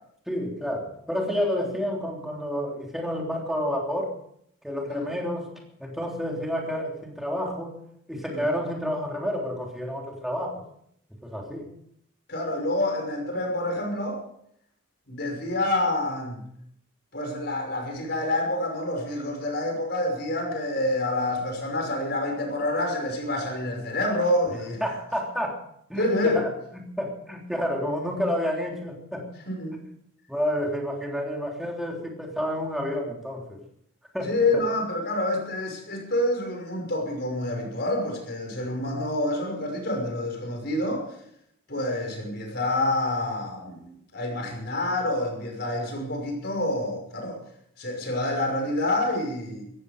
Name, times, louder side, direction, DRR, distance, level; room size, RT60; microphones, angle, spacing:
voice 1, 0.3-4.1 4.6-5.5 5.8-7.7 8.1-10.6 11.2-11.7 24.8-25.6 25.9-29.3 29.7-29.9 30.3-33.6 34.1-34.3, equal, ahead, -1 dB, 3.4 m, -30 dB
voice 2, 12.3-14.2 15.1-16.4 17.1-24.8 26.0-26.4 29.5-29.8 34.3-41.1 41.7-47.4 47.8-49.6, left 1 dB, 50° left, 2 dB, 5.7 m, -27 dB
17.0 x 15.0 x 5.2 m, 0.72 s
head